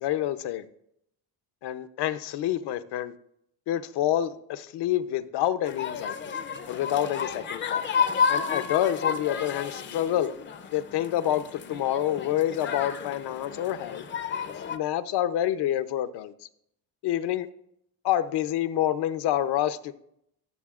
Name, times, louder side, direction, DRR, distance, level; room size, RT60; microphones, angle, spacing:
voice 1, 0.0-0.7 1.6-3.1 3.7-6.3 6.7-7.9 8.3-10.3 10.7-14.0 14.3-16.3 17.0-17.5 18.0-19.9, left 12 dB, 80° left, 0.7 m, -28 dB
sound 1, 5.7-14.8, left 6 dB, 30° left, 0.5 m, -31 dB
19.0 x 6.9 x 2.4 m
cardioid pair, 160°, 39 cm